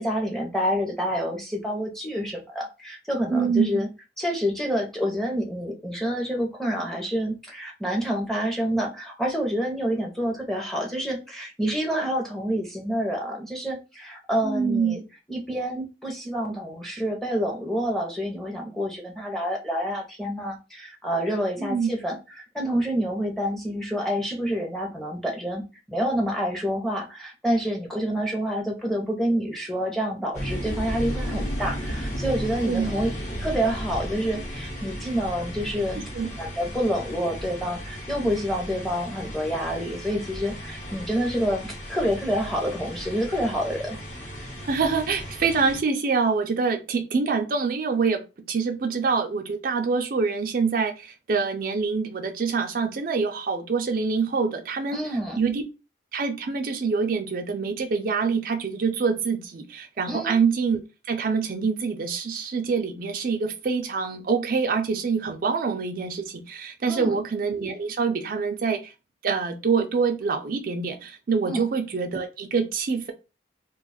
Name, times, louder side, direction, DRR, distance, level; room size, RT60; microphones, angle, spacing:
voice 1, 0.0-3.9 4.2-15.0 15.3-25.6 25.9-33.1 33.4-36.0 36.4-44.0 54.9-55.4 60.1-60.3 66.9-67.2 71.5-71.6, equal, ahead, 0 dB, 0.7 m, -28 dB
voice 2, 3.3-3.9 14.4-15.0 21.6-21.9 32.7-32.9 36.1-36.3 44.7-48.2 48.5-55.6 56.1-60.8 61.1-68.9 69.2-73.1, right 5 dB, 50° right, 4 dB, 0.4 m, -25 dB
sound 1, 30.3-45.8, equal, 40° left, 1.0 m, -35 dB
2.4 x 2.3 x 4.0 m, 0.29 s
head